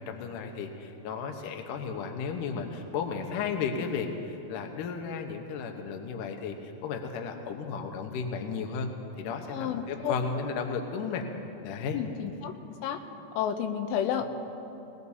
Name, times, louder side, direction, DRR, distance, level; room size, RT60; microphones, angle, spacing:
voice 1, 0.0-8.9 9.2-11.3 11.6-12.0, left 5 dB, 70° left, 3 dB, 2.0 m, -34 dB
voice 2, 9.5-10.1 11.9-12.5 12.8-13.0 13.4-14.3, left 9 dB, 90° left, 6 dB, 3.0 m, -30 dB
20.5 x 20.0 x 2.8 m, 3.0 s
omnidirectional pair, 5.0 m